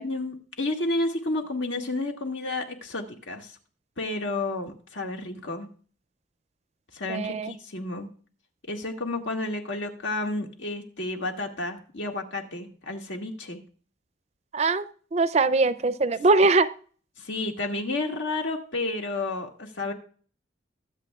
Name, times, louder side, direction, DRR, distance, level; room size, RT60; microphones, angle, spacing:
voice 1, 0.0-3.5 4.0-5.7 6.9-8.1 8.7-13.6 17.2-19.9, left 2 dB, 80° left, 2 dB, 1.9 m, -31 dB
voice 2, 7.1-7.5 14.5-14.9 15.1-16.7, right 3 dB, 35° right, 15 dB, 0.4 m, -21 dB
23.0 x 7.9 x 2.4 m, 0.43 s
head